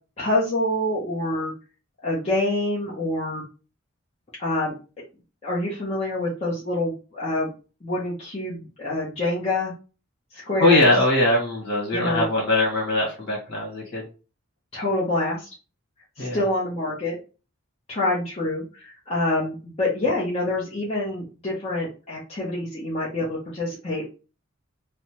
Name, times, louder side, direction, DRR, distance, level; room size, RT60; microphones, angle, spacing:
voice 1, 0.2-1.5 2.0-3.4 4.4-4.8 5.4-7.5 7.8-9.7 10.5-10.9 11.9-12.2 14.7-15.5 16.2-17.2 17.9-24.1, left 1 dB, 30° left, -7 dB, 0.8 m, -26 dB
voice 2, 10.6-14.0 16.2-16.4, left 2 dB, 55° left, -3 dB, 1.5 m, -21 dB
3.3 x 2.0 x 2.9 m, 0.33 s
head